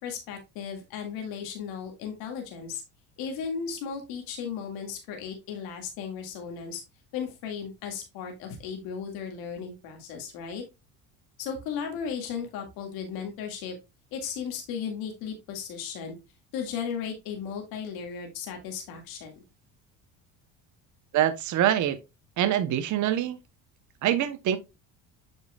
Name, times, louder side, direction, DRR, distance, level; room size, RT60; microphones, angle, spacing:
voice 1, 0.0-2.8 3.2-6.8 7.1-10.6 11.4-13.7 14.1-16.2 16.5-19.3, left 7 dB, 75° left, 2.1 m, -35 dB
voice 2, 21.1-22.0 22.4-23.4 24.0-24.6, right 11 dB, 55° right, 0.9 m, -24 dB
7.9 x 5.3 x 2.3 m
supercardioid pair, 90°, 36 cm